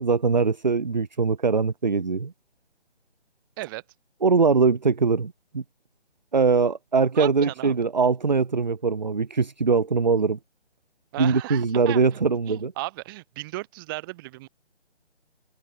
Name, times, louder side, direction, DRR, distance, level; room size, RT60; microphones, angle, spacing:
voice 1, 0.0-2.3 4.2-5.6 6.3-10.4 11.2-12.7, right 4 dB, 40° right, 0.4 m, -22 dB
voice 2, 7.1-7.7 11.1-12.2 12.5-14.5, right 20 dB, 20° right, 4.5 m, -35 dB
figure-of-eight pair, 155°, 35 cm